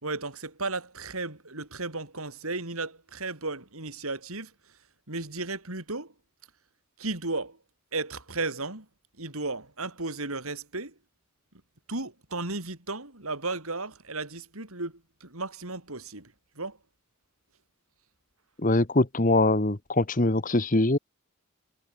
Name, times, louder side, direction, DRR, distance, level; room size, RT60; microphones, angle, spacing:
voice 1, 0.0-4.5 5.1-6.1 7.0-7.6 7.9-8.9 9.2-10.9 11.9-16.8, right 3 dB, 75° right, 4.7 m, -34 dB
voice 2, 18.6-21.0, left 2 dB, 35° left, 1.3 m, -23 dB
head